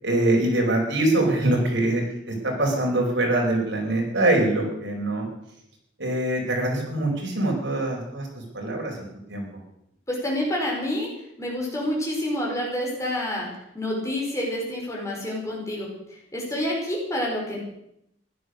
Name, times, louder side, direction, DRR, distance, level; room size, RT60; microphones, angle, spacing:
voice 1, 0.0-5.2 6.0-8.3 8.5-9.0 9.3-9.4, right 1 dB, 80° right, 0 dB, 4.9 m, -23 dB
voice 2, 10.1-11.1 11.4-13.5 13.7-17.6, left 1 dB, 15° left, -2 dB, 4.8 m, -28 dB
15.5 x 12.0 x 6.5 m, 0.79 s
head